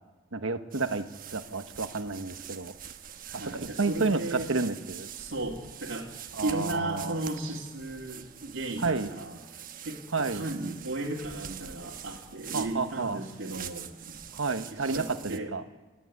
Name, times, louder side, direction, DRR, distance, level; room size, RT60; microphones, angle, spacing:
voice 1, 0.3-2.7 3.3-5.1 6.4-7.2 8.8-9.1 10.1-10.4 12.5-13.2 14.3-15.6, right 3 dB, 75° right, 9 dB, 1.2 m, -30 dB
sound 1, 0.7-15.4, right 9 dB, 45° right, 1.1 m, -44 dB
voice 2, 3.3-4.5 5.1-6.1 6.4-9.4 9.8-14.2 14.7-15.5, right 2 dB, 60° right, -5 dB, 2.4 m, -35 dB
28.5 x 12.0 x 9.6 m, 1.2 s
head